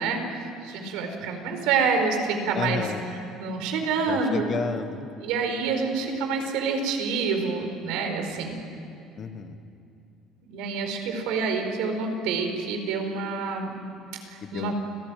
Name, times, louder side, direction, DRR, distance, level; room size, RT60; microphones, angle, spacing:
voice 1, 0.0-2.9 3.4-4.4 5.2-8.6 10.5-13.9 14.3-14.7, right 4 dB, 75° right, 4 dB, 4.6 m, -27 dB
voice 2, 2.5-3.0 4.1-5.1 9.2-9.6 14.4-14.7, left 5 dB, 30° left, 9 dB, 1.3 m, -31 dB
29.5 x 18.5 x 9.2 m, 2.7 s
cardioid pair, 175°, 0 cm